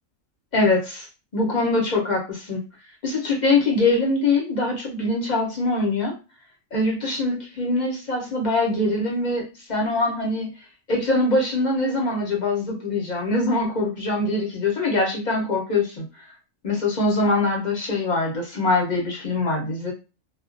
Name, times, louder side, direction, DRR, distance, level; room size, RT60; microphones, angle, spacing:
voice 1, 0.5-1.1 1.3-2.6 3.0-6.1 6.7-9.4 9.7-10.5 10.9-16.0 16.6-19.9, left 2 dB, 40° left, -2 dB, 0.7 m, -23 dB
2.3 x 2.1 x 2.4 m, 0.31 s
omnidirectional pair, 1.4 m